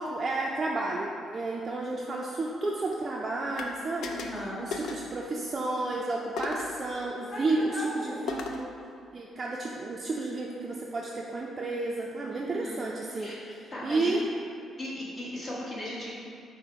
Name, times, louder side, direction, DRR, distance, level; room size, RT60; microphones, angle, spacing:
voice 1, 0.0-4.2 4.6-8.7 9.1-13.3 13.8-14.3 14.7-14.8, right 2 dB, 35° right, -2 dB, 0.4 m, -31 dB
sound 1, 3.6-3.7 4.0-4.4 4.7-5.1 6.4-6.8 8.3-8.7, left 4 dB, 70° left, 0.4 m, -36 dB
voice 2, 4.1-4.6 7.3-8.2 12.3-13.4 13.7-14.1 14.8-16.1, left 1 dB, 40° left, -7 dB, 1.2 m, -38 dB
5.4 x 2.0 x 4.6 m, 2.4 s
cardioid pair, 90°, 0 cm